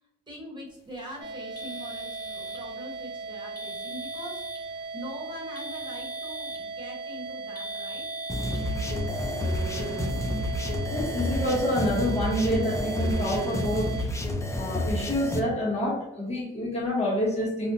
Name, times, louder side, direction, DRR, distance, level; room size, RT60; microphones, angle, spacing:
voice 1, 0.3-8.0, equal, 25° right, -3 dB, 1.3 m, -42 dB
sound 1, 1.2-14.1, right 4 dB, 60° right, 0.6 m, -38 dB
sound 2, 1.6-2.7 3.6-4.7 5.6-6.7 7.6-8.7, equal, 50° left, 0.9 m, -40 dB
sound 3, 8.3-15.4, left 1 dB, 15° left, 0.5 m, -29 dB
voice 2, 10.9-13.9 14.5-17.7, equal, 30° left, -4 dB, 1.3 m, -27 dB
3.3 x 2.4 x 2.7 m, 0.82 s
cardioid pair, 90°, 20 cm